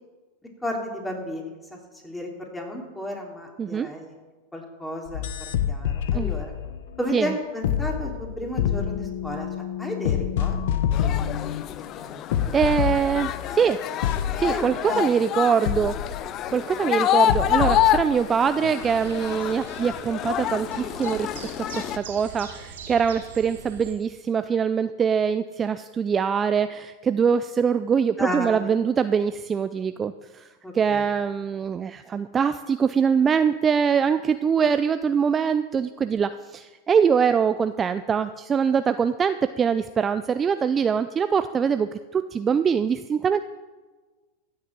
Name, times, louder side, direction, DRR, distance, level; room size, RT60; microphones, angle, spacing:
voice 1, 0.6-1.8 2.0-4.1 4.5-5.3 5.7-6.5 7.0-9.5 9.8-10.9 12.0-12.2 12.6-12.8 14.5-15.1 28.2-28.7 30.6-31.0, left 1 dB, 10° left, 0 dB, 3.4 m, -33 dB
sound 1, 5.1-11.8 12.3-13.6 14.0-14.7 15.6-16.5 17.3-18.1 18.6-18.7, left 9 dB, 65° left, 1.0 m, -27 dB
sound 2, 10.9-22.0, left 11 dB, 40° left, 0.6 m, -27 dB
voice 2, 12.5-13.8 14.4-16.0 16.5-21.3 21.7-30.5 30.7-43.4, right 6 dB, 25° right, 11 dB, 0.5 m, -23 dB
sound 3, 18.8-23.9, right 6 dB, 75° right, 2.8 m, -42 dB
15.0 x 6.7 x 7.5 m, 1.3 s
hypercardioid pair, 105°, 0 cm